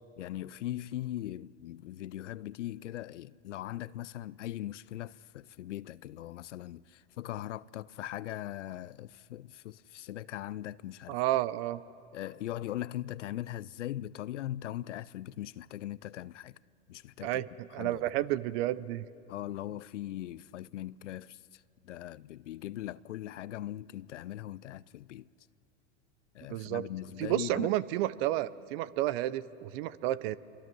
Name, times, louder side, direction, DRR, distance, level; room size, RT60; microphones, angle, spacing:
voice 1, 0.2-11.2 12.1-16.6 16.9-17.4 17.8-18.1 19.3-25.3 26.3-27.7, left 13 dB, 85° left, 0.6 m, -40 dB
voice 2, 11.1-11.8 17.2-19.0 26.5-26.8 27.2-30.4, right 14 dB, 60° right, 0.8 m, -31 dB
27.0 x 24.0 x 6.2 m
hypercardioid pair, 95°, 35 cm